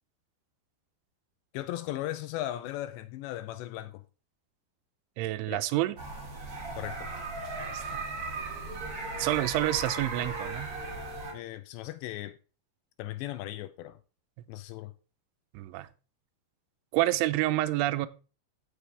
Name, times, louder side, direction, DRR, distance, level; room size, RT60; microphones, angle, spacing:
voice 1, 1.5-4.0 5.5-5.6 6.8-7.1 11.3-12.4 13.0-14.0 14.5-14.9, left 14 dB, 80° left, 2.6 m, -37 dB
voice 2, 5.2-6.0 7.6-8.1 9.2-10.7 15.5-15.9 16.9-18.1, right 15 dB, 85° right, 3.1 m, -28 dB
Wolfes howl howling Wolf Pack heulen, 6.0-11.3, right 3 dB, 35° right, 2.9 m, -37 dB
15.0 x 6.8 x 3.5 m
omnidirectional pair, 5.4 m